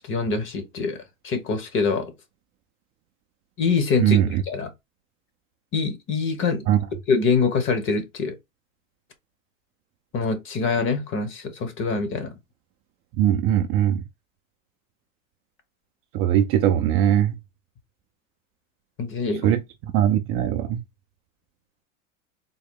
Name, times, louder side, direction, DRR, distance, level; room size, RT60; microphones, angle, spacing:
voice 1, 0.1-2.1 3.6-4.7 5.7-6.7 7.1-8.3 10.1-12.3 19.0-19.6, left 4 dB, 30° left, 0.9 m, -25 dB
voice 2, 4.0-4.4 6.7-6.8 13.2-14.0 16.1-17.4 19.4-19.6 19.9-20.8, right 11 dB, 35° right, 0.4 m, -20 dB
3.8 x 2.1 x 3.5 m
supercardioid pair, 120°, 40 cm